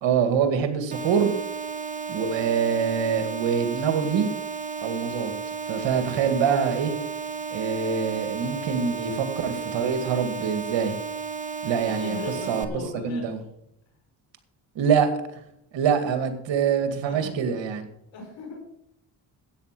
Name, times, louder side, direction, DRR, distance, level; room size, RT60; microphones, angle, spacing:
voice 1, 0.0-1.3 2.1-4.3 4.8-5.3 5.7-6.9 7.5-10.9 11.6-12.2 12.5-12.7 13.0-13.4 14.8-15.1 15.7-17.9, right 7 dB, 75° right, 8 dB, 2.3 m, -24 dB
sound 1, 0.9-12.6, right 5 dB, 15° right, 1.7 m, -33 dB
voice 2, 11.8-13.4 17.0-17.3 18.1-18.6, left 3 dB, 80° left, 2 dB, 5.2 m, -37 dB
13.0 x 9.1 x 6.1 m, 0.78 s
supercardioid pair, 65°, 44 cm